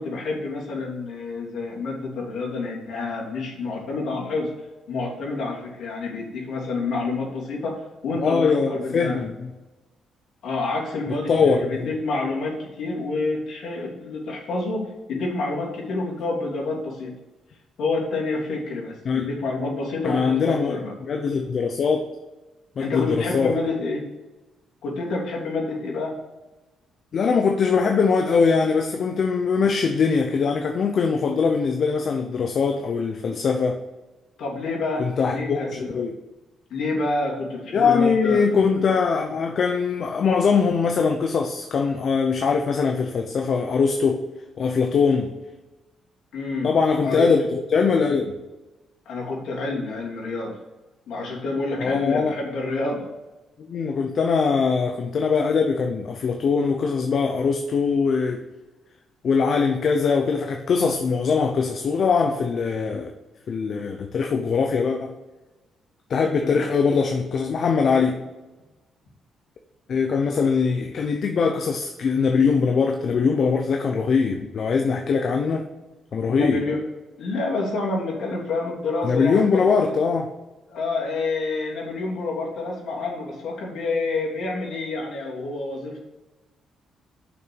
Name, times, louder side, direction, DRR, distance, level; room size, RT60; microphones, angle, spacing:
voice 1, 0.0-4.5 4.9-9.2 10.4-17.1 17.8-20.9 22.8-24.0 24.8-26.1 34.4-36.0 36.7-38.5 46.3-46.7 47.0-47.3 49.0-50.5 51.1-53.1 66.4-66.6 76.3-76.8 77.2-79.9 80.7-86.0, left 3 dB, 70° left, -3 dB, 3.1 m, -28 dB
voice 2, 8.2-9.5 11.3-11.9 19.0-19.3 20.0-22.1 22.8-23.6 27.1-33.8 35.0-36.2 37.7-44.2 44.6-45.3 46.6-48.3 51.8-52.3 53.6-58.4 59.2-63.1 63.5-65.1 66.1-68.2 69.9-75.7 76.1-76.6 79.0-80.3, left 5 dB, 55° left, 4 dB, 0.8 m, -22 dB
6.6 x 6.1 x 7.0 m, 1.1 s
cardioid pair, 90°, 0 cm